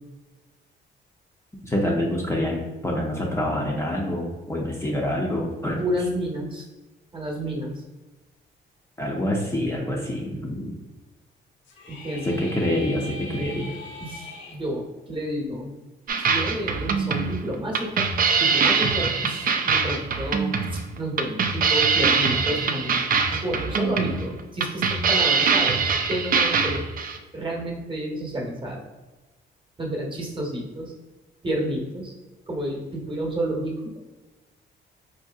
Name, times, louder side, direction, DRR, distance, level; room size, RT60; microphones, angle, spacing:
voice 1, 1.6-5.8 9.0-10.8 12.2-13.7, left 1 dB, 15° left, -3 dB, 0.5 m, -26 dB
voice 2, 5.8-6.7 7.1-7.8 11.9-12.4 14.0-15.7 16.2-18.1 18.4-26.8 27.3-28.8 29.8-30.9 31.4-32.1 32.5-33.9, right 1 dB, 25° right, -1 dB, 0.9 m, -30 dB
sound 1, 11.6-14.6, left 2 dB, 65° left, 0.8 m, -40 dB
sound 2, 16.1-27.2, right 5 dB, 45° right, 0.4 m, -23 dB
4.2 x 2.7 x 2.3 m, 1.2 s
cardioid pair, 90°, 20 cm